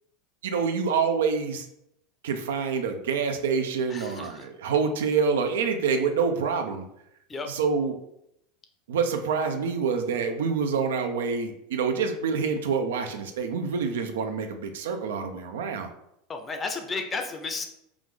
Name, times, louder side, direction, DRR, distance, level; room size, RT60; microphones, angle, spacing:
voice 1, 0.4-1.6 2.2-6.8 7.5-8.0 8.9-15.9, right 5 dB, 90° right, 6 dB, 0.5 m, -27 dB
voice 2, 3.9-4.5 7.3-7.5 16.3-17.6, left 4 dB, 25° left, 5 dB, 0.6 m, -33 dB
4.7 x 2.5 x 3.7 m, 0.79 s
supercardioid pair, 115°, 0 cm